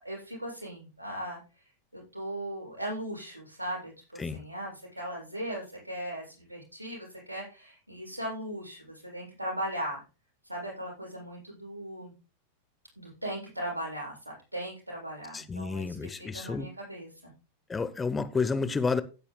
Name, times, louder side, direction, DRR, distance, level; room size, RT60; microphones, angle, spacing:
voice 1, 0.0-10.0 10.4-12.1 13.0-17.3, right 1 dB, 85° right, 7.7 m, -38 dB
voice 2, 15.3-16.7 17.7-19.0, left 4 dB, 15° left, 0.9 m, -30 dB
16.0 x 10.0 x 2.3 m
figure-of-eight pair, 90°, 0 cm